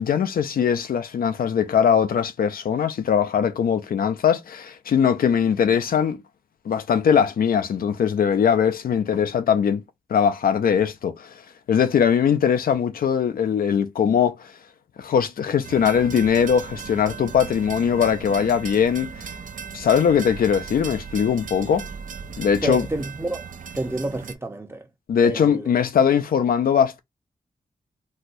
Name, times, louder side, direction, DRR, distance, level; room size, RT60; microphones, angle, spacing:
voice 1, 0.0-6.2 6.7-9.8 10.1-11.3 11.7-14.5 15.0-19.1 19.7-21.9 22.4-22.9 25.1-27.0, left 7 dB, 70° left, 0.4 m, -21 dB
sound 1, 15.6-24.3, right 6 dB, 60° right, 0.4 m, -37 dB
voice 2, 22.6-23.5 23.7-24.9 25.2-25.7, right 1 dB, 15° right, 0.7 m, -29 dB
4.2 x 2.2 x 2.5 m
cardioid pair, 70°, 15 cm